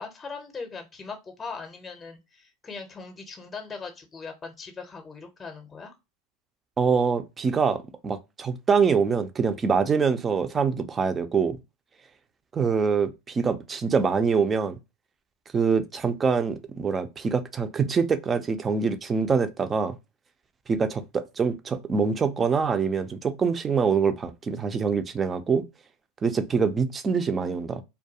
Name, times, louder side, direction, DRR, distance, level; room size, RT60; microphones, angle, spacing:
voice 1, 0.0-5.9, left 4 dB, 20° left, 0.6 m, -40 dB
voice 2, 6.8-11.6 12.5-14.8 15.5-20.0 20.7-25.6 26.2-27.8, right 5 dB, 25° right, 0.4 m, -24 dB
2.3 x 2.2 x 2.7 m
supercardioid pair, 110°, 0 cm